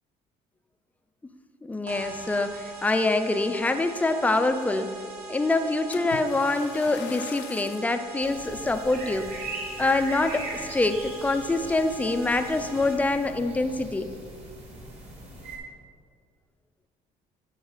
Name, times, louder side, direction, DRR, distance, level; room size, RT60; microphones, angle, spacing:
voice 1, 1.6-4.9 5.3-9.3 9.8-14.1, left 2 dB, 10° left, 8 dB, 0.3 m, -25 dB
sound 1, 1.9-13.3, right 4 dB, 70° right, 1.0 m, -42 dB
Splash splatter, 5.9-8.0 8.6-8.8 9.4-9.5, left 9 dB, 85° left, 0.4 m, -42 dB
sound 2, 8.2-15.6, right 2 dB, 40° right, 1.5 m, -40 dB
9.1 x 4.1 x 3.8 m, 2.1 s
cardioid pair, 110°, 17 cm